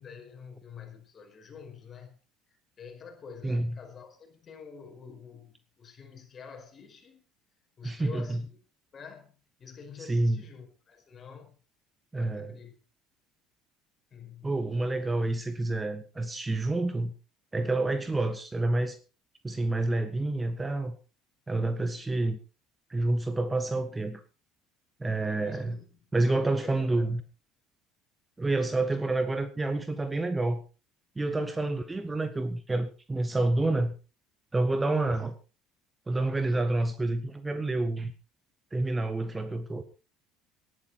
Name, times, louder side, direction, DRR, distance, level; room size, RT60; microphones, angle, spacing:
voice 1, 0.0-2.2 2.5-7.2 7.8-8.6 8.9-9.3 9.6-11.6 12.2-12.7 14.1-14.5 25.3-27.1 28.7-28.9 34.9-35.1, left 6 dB, 35° left, 5.1 m, -48 dB
voice 2, 3.4-3.8 7.8-8.4 10.0-10.4 12.1-12.6 14.4-17.1 17.5-19.0 19.4-21.0 21.5-22.4 22.9-24.2 25.0-25.8 26.1-27.2 28.4-30.6 31.2-33.9 34.5-35.4 36.1-38.1 38.7-39.8, right 2 dB, 15° right, 1.6 m, -28 dB
19.0 x 11.5 x 4.4 m
figure-of-eight pair, 60°, 0 cm